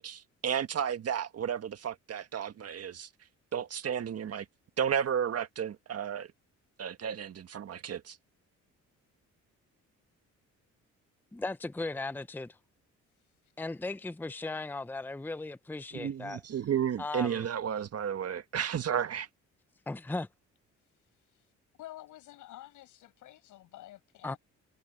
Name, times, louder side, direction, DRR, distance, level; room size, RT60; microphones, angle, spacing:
voice 1, 0.0-3.1 3.5-4.5 4.8-6.3 6.8-8.2 15.9-19.3, right 8 dB, 55° right, 1.6 m, -33 dB
voice 2, 11.3-12.6 13.6-16.4 17.0-17.5 19.9-20.3 24.2-24.4, left 2 dB, 5° left, 0.7 m, -37 dB
voice 3, 21.8-24.4, left 14 dB, 85° left, 7.3 m, -49 dB
cardioid pair, 90°, 30 cm